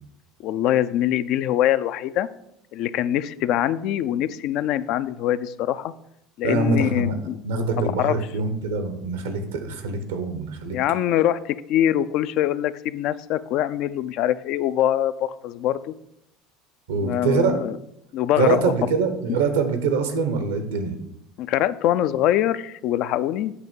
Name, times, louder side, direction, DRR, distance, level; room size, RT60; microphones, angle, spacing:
voice 1, 0.4-2.3 2.7-5.9 6.4-7.4 7.8-8.1 10.7-15.9 17.0-17.8 18.1-18.6 21.4-23.5, left 12 dB, 60° left, 14 dB, 0.3 m, -23 dB
voice 2, 6.4-7.2 7.4-10.8 16.9-17.6 18.3-20.9, right 4 dB, 90° right, 7 dB, 0.9 m, -24 dB
8.0 x 2.7 x 5.3 m, 0.79 s
supercardioid pair, 90°, 0 cm